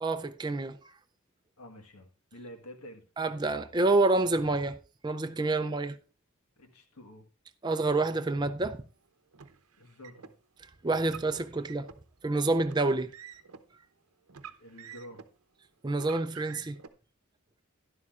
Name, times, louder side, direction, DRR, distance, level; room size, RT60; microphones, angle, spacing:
voice 1, 0.0-0.8 3.2-4.8 5.0-6.0 7.6-8.8 10.8-11.9 12.2-13.1 15.8-16.8, right 2 dB, 20° right, 0.4 m, -28 dB
voice 2, 1.6-3.0 6.6-7.2 9.8-10.3 14.6-15.2, equal, 90° left, 1.5 m, -48 dB
Car, 9.3-10.3 11.0-12.0 12.6-13.6 14.3-15.4 15.9-16.9, right 7 dB, 80° right, 0.8 m, -48 dB
12.0 x 11.0 x 2.5 m
head